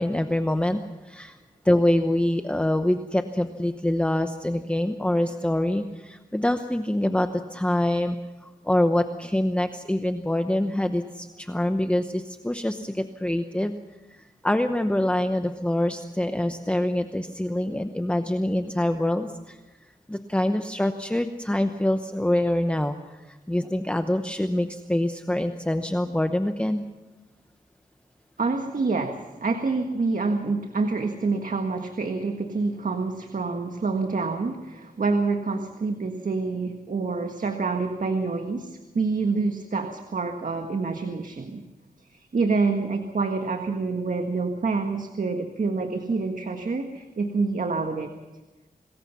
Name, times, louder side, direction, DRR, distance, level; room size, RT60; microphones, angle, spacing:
voice 1, 0.0-1.4 1.6-8.2 8.4-13.8 14.1-19.6 20.1-26.8, left 1 dB, 10° left, 7 dB, 0.9 m, -25 dB
voice 2, 28.4-41.6 42.1-48.1, right 4 dB, 60° right, 5 dB, 1.6 m, -27 dB
26.0 x 21.0 x 5.8 m, 1.1 s
wide cardioid pair, 125°, 15 cm